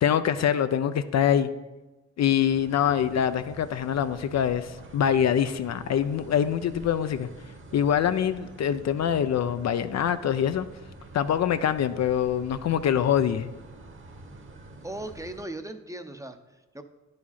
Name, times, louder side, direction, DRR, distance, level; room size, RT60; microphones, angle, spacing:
voice 1, 0.0-1.5 2.2-7.3 7.7-10.7 11.1-13.5, left 9 dB, 55° left, 11 dB, 0.5 m, -24 dB
sound 1, 2.5-15.4, right 2 dB, 40° right, 1.2 m, -47 dB
voice 2, 14.8-16.8, right 1 dB, 10° right, 7 dB, 0.7 m, -38 dB
10.0 x 4.8 x 4.2 m, 1.1 s
supercardioid pair, 60°, 33 cm